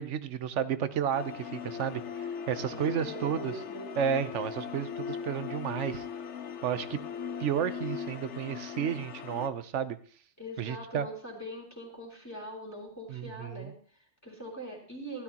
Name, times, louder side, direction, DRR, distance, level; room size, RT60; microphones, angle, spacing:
voice 1, 0.0-3.5 4.0-6.0 6.6-7.0 7.4-10.0 10.6-11.1 13.1-13.7, right 8 dB, 80° right, 13 dB, 1.1 m, -32 dB
sound 1, 1.1-9.5, left 7 dB, 75° left, 1.1 m, -39 dB
voice 2, 2.7-3.9 10.4-15.2, equal, 15° left, -2 dB, 3.6 m, -42 dB
16.0 x 12.0 x 2.9 m, 0.42 s
omnidirectional pair, 1.2 m